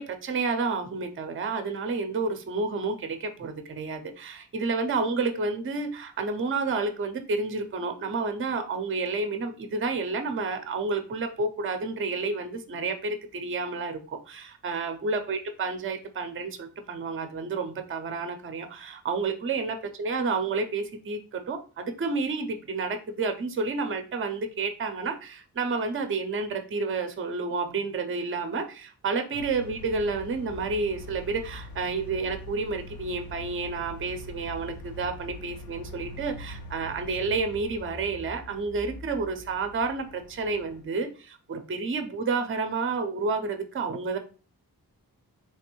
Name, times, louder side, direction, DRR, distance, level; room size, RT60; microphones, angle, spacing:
voice 1, 0.0-44.2, right 4 dB, 35° right, 0.5 m, -30 dB
sound 1, 29.3-40.8, left 1 dB, 70° left, 0.7 m, -43 dB
3.4 x 2.5 x 2.9 m
wide cardioid pair, 120°, 37 cm